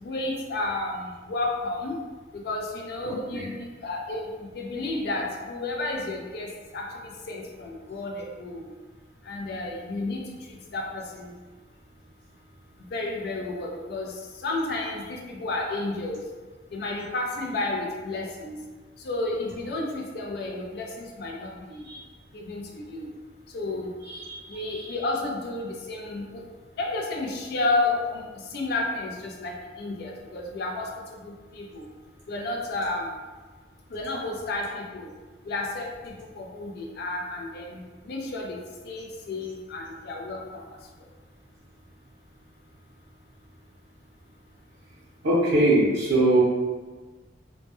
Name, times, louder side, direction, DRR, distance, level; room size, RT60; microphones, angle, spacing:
voice 1, 0.0-2.0 2.3-3.5 3.8-4.3 4.6-6.5 6.7-8.7 9.3-10.2 10.7-11.3 12.9-14.1 14.4-16.2 16.7-18.5 19.0-21.8 22.3-23.1 23.5-23.9 24.5-26.4 26.8-28.2 28.5-30.9 31.2-31.8 32.3-33.1 33.9-35.1 35.5-37.8 38.1-38.6 38.9-40.6, left 2 dB, 60° left, 0 dB, 0.4 m, -31 dB
voice 2, 24.1-24.8 45.2-46.4, right 2 dB, 90° right, -9 dB, 0.6 m, -22 dB
2.1 x 2.1 x 2.9 m, 1.3 s
head